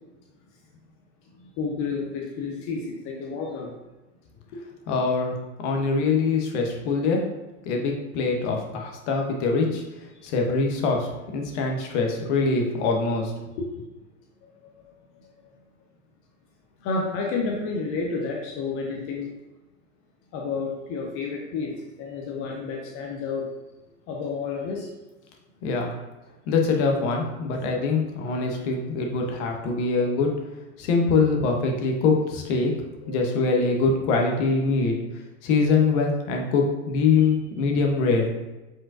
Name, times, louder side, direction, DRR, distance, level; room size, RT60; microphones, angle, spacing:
voice 1, 1.3-3.7 14.4-15.5 16.8-19.3 20.3-21.7 22.0-23.5 24.1-24.9 33.0-33.4, left 4 dB, 30° left, -1 dB, 0.6 m, -31 dB
voice 2, 4.9-7.2 7.6-9.8 10.2-13.3 25.6-26.0 26.5-30.3 30.8-32.7 33.1-35.0 35.4-38.4, left 4 dB, 50° left, 2 dB, 1.0 m, -23 dB
5.2 x 3.6 x 2.5 m, 1.1 s
hypercardioid pair, 100°, 46 cm